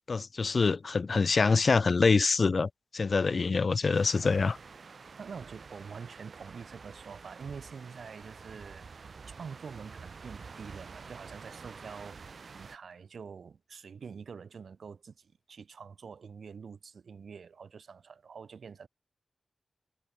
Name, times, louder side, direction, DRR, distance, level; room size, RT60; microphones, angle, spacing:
voice 1, 0.1-4.6, left 4 dB, 45° left, 0.6 m, -25 dB
sound 1, 3.9-12.8, right 5 dB, 50° right, 4.0 m, -48 dB
voice 2, 5.2-9.1 9.4-18.9, right 6 dB, 70° right, 3.4 m, -46 dB
wide cardioid pair, 170°, 0 cm